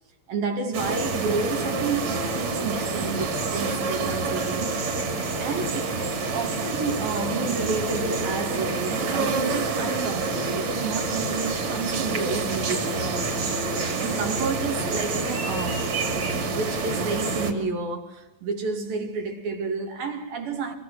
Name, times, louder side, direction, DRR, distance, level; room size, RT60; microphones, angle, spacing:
voice 1, 0.3-4.7 5.4-6.0 6.3-12.9 14.0-16.0 16.4-20.8, right 4 dB, 80° right, 4.5 m, -30 dB
sound 1, 0.7-17.5, right 3 dB, 50° right, 3.6 m, -27 dB
25.5 x 25.0 x 5.9 m
omnidirectional pair, 4.1 m